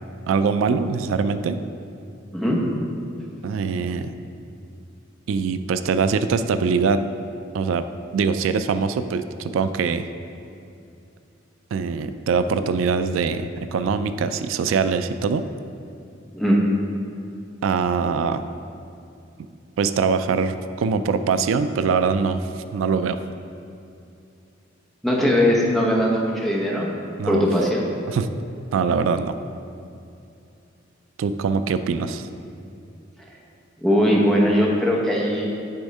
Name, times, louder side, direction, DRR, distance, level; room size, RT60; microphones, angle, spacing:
voice 1, 0.3-1.6 3.4-4.1 5.3-7.0 7.5-7.8 8.1-10.1 11.7-15.4 17.6-18.4 19.8-22.4 22.7-23.2 27.2-27.4 28.1-28.3 28.7-29.3 31.2-32.3, right 5 dB, 90° right, 11 dB, 0.3 m, -23 dB
voice 2, 25.0-26.9 27.3-27.8 33.8-35.5, equal, ahead, -3 dB, 0.9 m, -20 dB
8.3 x 3.5 x 5.4 m, 2.6 s
head